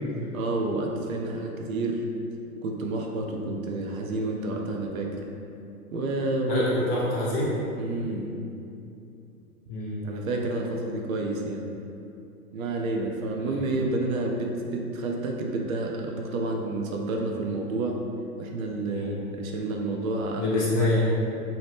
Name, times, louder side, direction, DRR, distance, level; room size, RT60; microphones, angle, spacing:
voice 1, 0.3-2.0 2.6-5.2 5.9-6.7 7.8-8.4 10.0-11.7 12.5-18.0 18.4-20.6, right 2 dB, 65° right, 1 dB, 0.5 m, -29 dB
voice 2, 6.5-7.5 9.7-10.0 13.4-13.6 18.8-19.2 20.4-21.1, left 1 dB, 30° left, -8 dB, 0.9 m, -26 dB
2.7 x 2.0 x 3.3 m, 2.7 s
hypercardioid pair, 125°, 44 cm